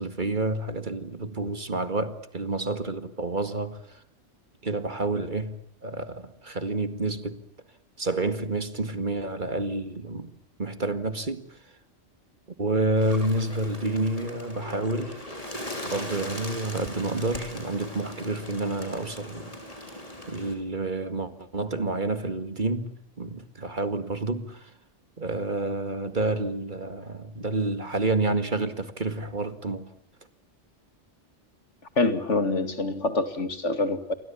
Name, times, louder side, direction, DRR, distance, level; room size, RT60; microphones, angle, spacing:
voice 1, 0.0-4.0 4.6-7.4 8.0-10.3 10.6-11.6 12.6-15.2 15.8-19.5 19.8-20.0 20.3-24.7 25.2-29.9, right 2 dB, 45° right, 2.1 m, -29 dB
Bird, 13.0-20.5, left 1 dB, 30° left, 5.6 m, -39 dB
voice 2, 32.0-34.1, left 3 dB, 85° left, 2.5 m, -25 dB
29.0 x 24.0 x 7.2 m
omnidirectional pair, 1.2 m